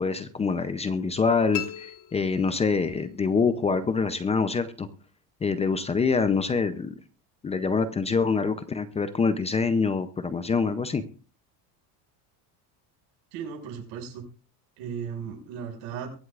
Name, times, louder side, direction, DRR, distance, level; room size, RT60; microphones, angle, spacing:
voice 1, 0.0-4.9 5.4-6.9 7.4-11.0, left 5 dB, 15° left, 11 dB, 0.5 m, -25 dB
sound 1, 1.5-3.1, left 11 dB, 45° left, 1.7 m, -38 dB
voice 2, 13.3-14.2 14.8-16.2, right 7 dB, 85° right, 1 dB, 6.2 m, -36 dB
23.5 x 7.9 x 2.4 m, 0.39 s
cardioid pair, 155°, 43 cm